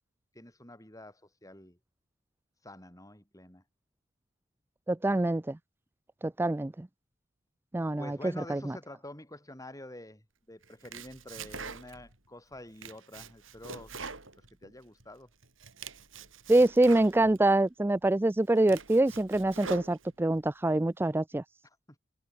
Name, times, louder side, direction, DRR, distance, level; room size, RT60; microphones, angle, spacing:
voice 1, 0.3-1.8 2.6-3.6 8.0-13.9 14.4-15.3, left 1 dB, 15° left, 7.8 m, -48 dB
voice 2, 4.9-5.6 6.2-6.9 7.7-8.8 16.5-21.4, right 2 dB, 10° right, 0.4 m, -25 dB
Domestic sounds home sounds, 10.6-12.2 12.5-15.0 15.4-17.4 18.0-18.1 18.5-20.4, right 5 dB, 70° right, 7.8 m, -44 dB
head